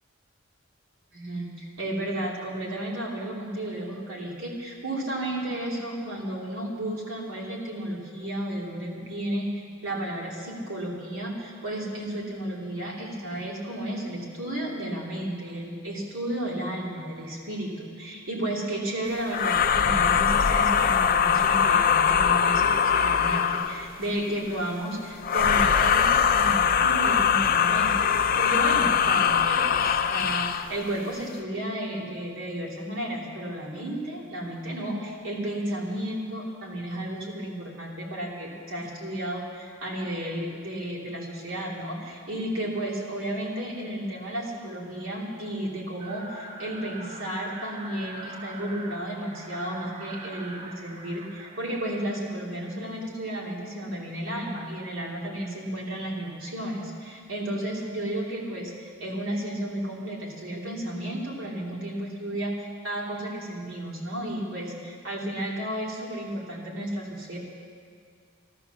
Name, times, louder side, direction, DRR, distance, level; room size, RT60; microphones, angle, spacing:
voice 1, 1.1-67.4, right 1 dB, 80° right, -3 dB, 3.1 m, -33 dB
sound 1, 19.3-23.9 25.2-30.7, left 7 dB, 45° left, 0.5 m, -22 dB
sound 2, 46.0-52.2, right 2 dB, 30° right, 1.0 m, -43 dB
13.5 x 13.0 x 6.9 m, 2.1 s
head